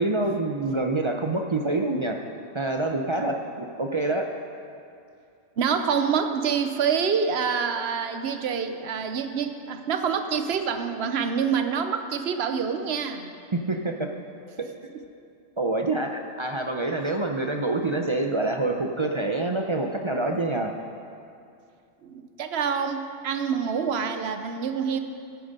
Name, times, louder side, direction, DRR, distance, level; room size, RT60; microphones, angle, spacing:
voice 1, 0.0-2.2 2.5-4.3 13.5-14.1 14.6-14.7 15.6-20.7, right 2 dB, 40° right, 3 dB, 0.4 m, -26 dB
voice 2, 5.6-13.3 22.0-25.0, right 6 dB, 60° right, 8 dB, 0.9 m, -26 dB
14.0 x 8.8 x 5.3 m, 2.5 s
omnidirectional pair, 1.3 m